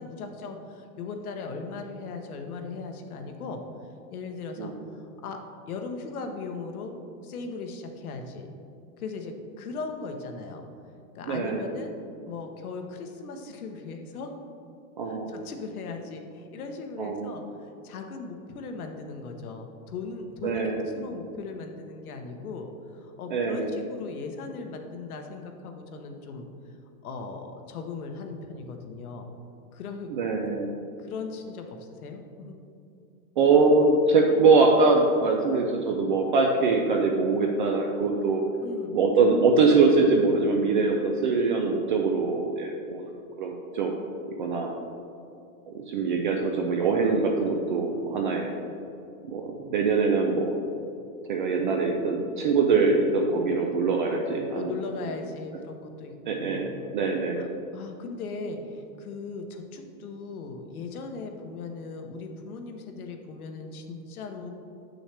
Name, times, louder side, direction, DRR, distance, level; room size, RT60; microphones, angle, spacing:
voice 1, 0.0-3.6 4.1-5.4 5.7-8.5 9.0-10.6 11.1-14.3 15.0-22.7 22.9-26.5 27.0-29.3 29.7-30.1 31.0-32.5 38.6-39.0 54.5-57.0 57.3-64.5, left 4 dB, 75° left, 4 dB, 1.1 m, -38 dB
voice 2, 11.3-11.7 15.0-15.3 17.0-17.3 20.4-20.9 23.3-23.7 30.1-30.7 33.4-38.4 38.9-43.0 43.4-43.9 44.4-44.7 45.7-48.5 49.3-50.5 51.3-54.8 56.3-57.5, right 4 dB, 35° right, 1 dB, 0.4 m, -23 dB
8.1 x 6.3 x 3.3 m, 2.7 s
supercardioid pair, 160°, 44 cm